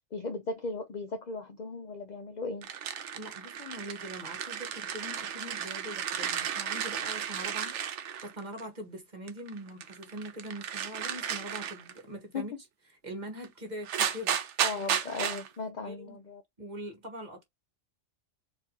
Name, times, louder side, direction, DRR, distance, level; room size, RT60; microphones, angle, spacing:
voice 1, 0.1-2.7 12.3-12.6 14.6-16.4, left 3 dB, 50° left, 0.5 m, -37 dB
sound 1, 2.6-8.6 9.3-12.0 13.4-13.5 13.8-15.5, right 8 dB, 75° right, 1.0 m, -34 dB
voice 2, 3.1-7.8 8.2-12.5 13.0-14.4 15.8-16.2 16.6-17.4, equal, 40° right, 1.4 m, -42 dB
4.4 x 2.6 x 2.9 m
omnidirectional pair, 1.2 m